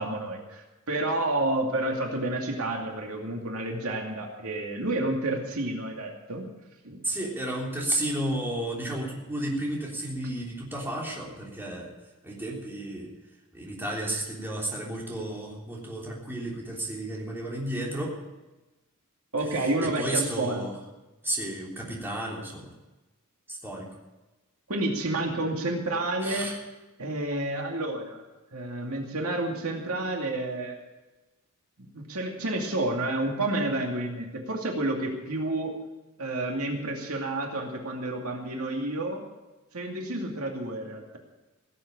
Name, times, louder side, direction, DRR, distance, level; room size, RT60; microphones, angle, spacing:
voice 1, 0.0-6.5 6.8-7.0 19.3-20.7 24.7-26.5 27.0-28.2 28.5-30.8 31.8-35.7 36.2-39.2 39.7-41.2, right 2 dB, 75° right, 1 dB, 2.5 m, -30 dB
voice 2, 7.0-11.9 12.2-13.1 13.5-18.2 19.5-20.7 21.2-22.7 23.5-23.9 26.2-26.6, right 1 dB, 10° right, -3 dB, 3.4 m, -32 dB
17.0 x 8.0 x 8.6 m, 1.1 s
head